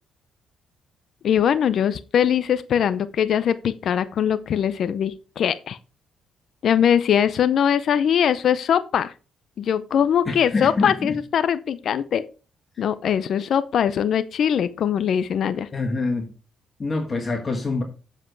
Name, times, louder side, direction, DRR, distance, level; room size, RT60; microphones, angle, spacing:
voice 1, 1.2-5.8 6.6-9.1 9.6-12.2 12.8-15.7, left 8 dB, 65° left, 14 dB, 0.6 m, -21 dB
voice 2, 10.3-11.1 15.7-16.3 16.8-17.8, left 3 dB, 35° left, 4 dB, 1.5 m, -25 dB
7.7 x 7.6 x 4.6 m, 0.34 s
cardioid pair, 90°, 0 cm